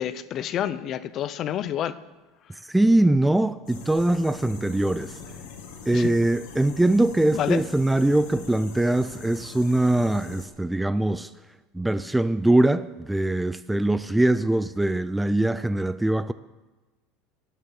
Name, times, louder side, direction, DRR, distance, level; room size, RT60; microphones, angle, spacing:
voice 1, 0.0-1.9 5.9-6.1 7.3-7.6, left 10 dB, 40° left, 0.6 m, -28 dB
voice 2, 2.6-5.2 5.9-11.3 11.7-16.3, right 1 dB, 5° right, 0.3 m, -22 dB
sound 1, 3.7-10.5, left 5 dB, 80° left, 2.4 m, -42 dB
12.0 x 8.5 x 7.5 m
supercardioid pair, 140°, 0 cm